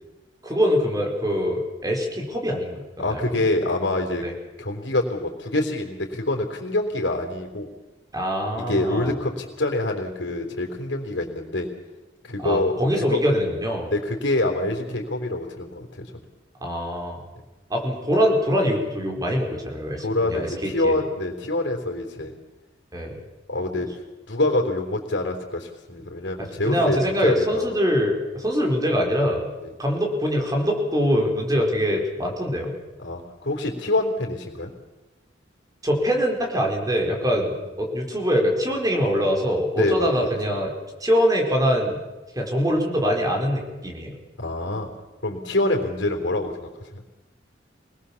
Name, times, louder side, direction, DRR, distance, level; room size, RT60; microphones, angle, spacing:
voice 1, 0.4-3.2 4.2-4.3 8.1-9.1 12.4-13.9 16.6-17.2 17.7-21.0 22.9-23.2 26.4-29.4 29.8-32.8 35.8-40.7 41.0-42.0 42.4-44.1, equal, 20° right, 1 dB, 4.6 m, -23 dB
voice 2, 3.0-4.2 4.6-7.7 8.6-11.7 12.2-13.2 13.9-16.3 20.0-22.3 23.5-23.9 24.3-27.8 29.6-29.7 33.0-34.7 37.2-37.5 39.8-40.3 44.4-44.9 45.2-46.9, left 2 dB, 80° left, 0 dB, 3.7 m, -26 dB
25.0 x 20.0 x 7.2 m, 1.1 s
head